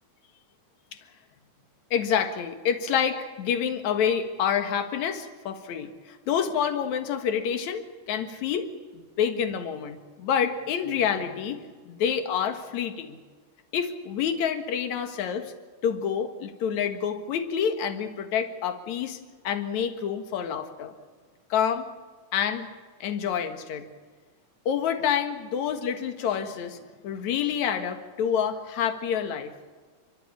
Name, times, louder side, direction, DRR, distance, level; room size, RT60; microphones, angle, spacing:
voice 1, 1.9-8.7 8.9-13.2 13.7-15.5 15.8-19.2 19.4-20.9 21.5-21.9 22.3-22.7 23.0-23.8 24.7-26.8 27.0-29.5, left 8 dB, 60° left, 7 dB, 2.8 m, -28 dB
30.0 x 13.0 x 8.7 m, 1.4 s
omnidirectional pair, 3.8 m